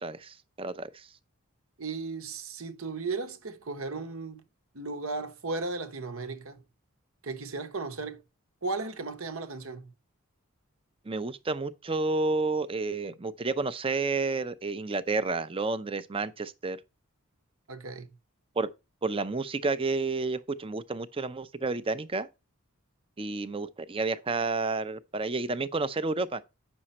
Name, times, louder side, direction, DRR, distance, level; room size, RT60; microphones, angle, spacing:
voice 1, 0.0-1.1 11.1-16.8 18.6-18.7 19.0-22.3 23.2-26.4, right 3 dB, 25° right, 0.6 m, -30 dB
voice 2, 1.8-4.4 4.7-6.6 7.2-8.2 8.6-9.9 17.7-18.1, right 3 dB, 70° right, 1.1 m, -35 dB
8.7 x 6.3 x 4.2 m
head